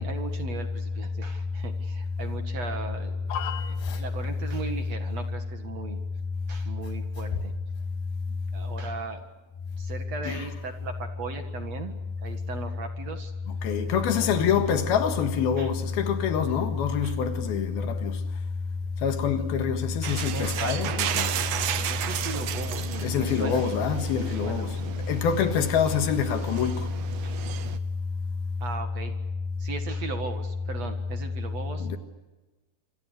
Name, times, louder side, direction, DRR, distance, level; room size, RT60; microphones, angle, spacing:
voice 1, 0.0-3.2 3.5-6.0 6.5-7.5 8.3-9.3 9.8-13.3 14.2-14.5 15.6-15.7 17.0-17.2 19.9-21.0 21.3-23.7 24.0-25.0 27.2-27.4 28.6-29.2 29.6-32.0, right 4 dB, 50° right, 2.5 m, -38 dB
voice 2, 3.3-4.0 10.2-10.5 13.6-18.2 19.0-21.3 23.0-24.7 25.1-26.9 31.8-32.0, left 7 dB, 80° left, 3.5 m, -26 dB
sound 1, 20.0-27.8, right 11 dB, 70° right, 2.6 m, -33 dB
27.5 x 26.0 x 6.6 m
omnidirectional pair, 4.4 m